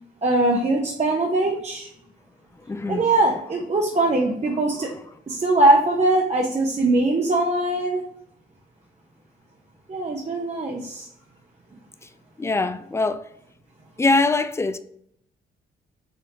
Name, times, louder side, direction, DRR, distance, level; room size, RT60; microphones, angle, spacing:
voice 1, 0.2-1.9 2.9-4.9 5.3-8.0 9.9-11.1, right 2 dB, 35° right, 0.8 m, -21 dB
voice 2, 2.7-3.1 4.5-4.6 12.4-13.2 14.0-14.8, left 3 dB, 15° left, 0.4 m, -23 dB
5.0 x 3.2 x 2.8 m
supercardioid pair, 65°, 21 cm